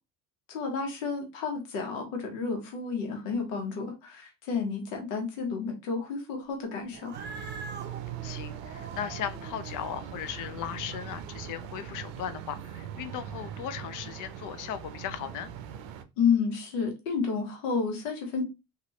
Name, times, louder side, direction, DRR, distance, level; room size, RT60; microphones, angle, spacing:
voice 1, 0.5-7.1 16.2-18.4, left 5 dB, 85° left, 1.2 m, -31 dB
Cat, 6.9-11.5, right 4 dB, 25° right, 0.6 m, -45 dB
sound 1, 7.1-16.0, right 9 dB, 75° right, 0.6 m, -41 dB
voice 2, 8.2-15.5, left 9 dB, 55° left, 0.6 m, -37 dB
2.7 x 2.6 x 3.0 m
hypercardioid pair, 70°, 38 cm